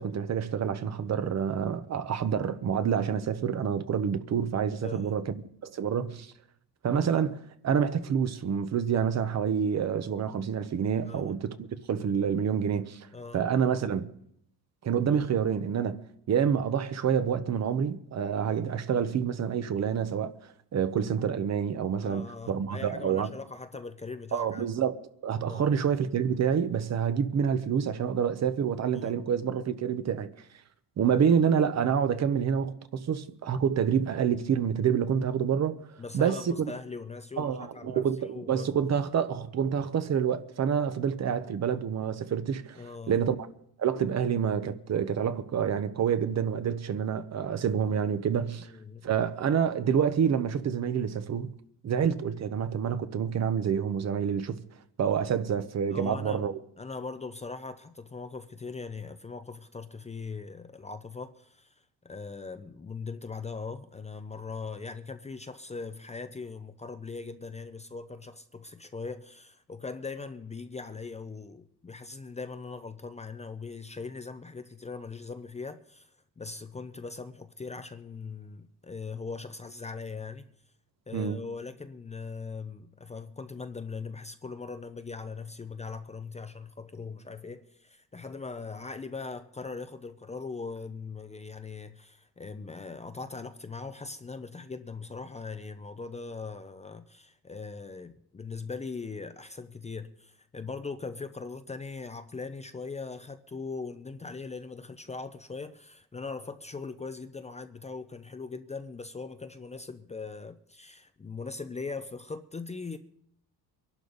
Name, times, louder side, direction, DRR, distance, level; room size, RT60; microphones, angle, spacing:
voice 1, 0.0-5.4 5.6-6.3 6.8-7.4 7.6-13.1 13.3-14.1 14.8-16.0 16.3-20.3 20.7-23.3 24.3-25.0 25.2-30.3 31.0-35.8 36.1-36.7 37.4-43.5 43.8-48.7 49.0-51.5 51.8-54.6 55.0-56.6 81.1-81.4, right 7 dB, 45° right, 0.9 m, -27 dB
voice 2, 4.8-5.2 11.1-11.4 13.1-13.4 22.0-24.7 25.5-25.6 28.9-29.2 36.0-38.7 42.8-43.2 48.6-49.1 55.9-56.5 56.8-76.1 76.4-80.5 81.1-113.0, left 4 dB, 15° left, 0.6 m, -40 dB
23.5 x 11.5 x 4.0 m
cardioid pair, 130°, 38 cm